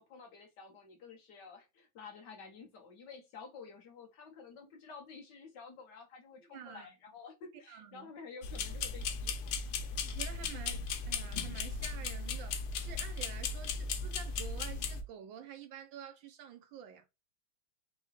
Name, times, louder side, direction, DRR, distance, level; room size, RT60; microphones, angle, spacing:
voice 1, 0.0-10.0, left 5 dB, 60° left, 1.3 m, -51 dB
voice 2, 6.4-6.9 7.7-8.1 10.0-17.1, right 8 dB, 75° right, 1.2 m, -49 dB
sound 1, 8.4-15.0, left 5 dB, 90° left, 1.6 m, -37 dB
4.6 x 3.0 x 3.0 m
omnidirectional pair, 2.4 m